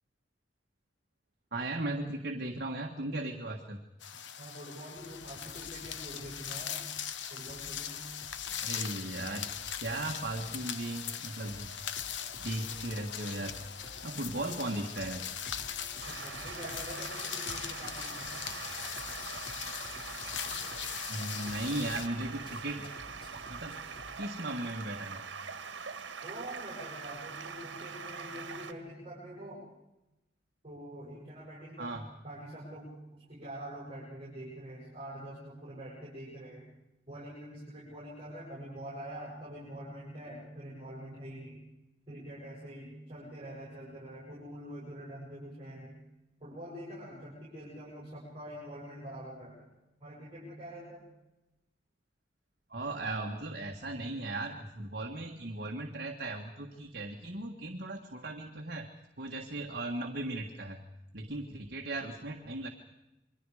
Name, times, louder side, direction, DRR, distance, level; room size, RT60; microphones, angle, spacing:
voice 1, 1.5-3.8 8.6-9.5 9.8-11.7 12.4-13.5 14.0-15.2 21.1-22.9 23.5-23.8 24.2-25.2 31.8-32.1 52.7-58.9 59.2-60.9 61.1-62.7, right 2 dB, 55° right, 2 dB, 1.7 m, -37 dB
sound 1, 4.0-22.1, left 9 dB, 85° left, 1.0 m, -40 dB
voice 2, 4.4-6.9 7.3-8.1 16.1-18.4 26.2-29.7 30.6-32.0 32.2-36.6 37.1-41.6 42.1-46.0 46.4-49.6 50.0-51.0, equal, 30° right, -7 dB, 7.5 m, -45 dB
sound 2, 4.8-24.1, equal, 30° left, 4.3 m, -52 dB
Stream, 16.0-28.7, right 5 dB, 90° right, 1.6 m, -43 dB
28.5 x 23.0 x 5.0 m, 0.95 s
head